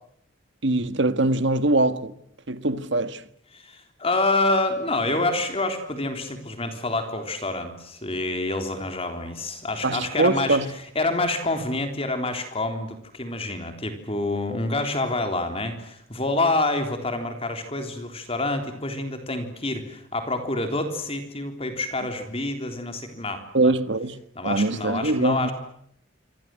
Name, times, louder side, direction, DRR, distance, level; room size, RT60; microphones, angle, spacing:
voice 1, 0.6-2.1 2.5-3.2 9.8-10.7 23.5-25.5, right 2 dB, 65° right, 1.7 m, -23 dB
voice 2, 3.5-10.6 11.0-23.7 24.4-25.5, left 2 dB, 30° left, 3.6 m, -27 dB
27.0 x 26.5 x 7.8 m
head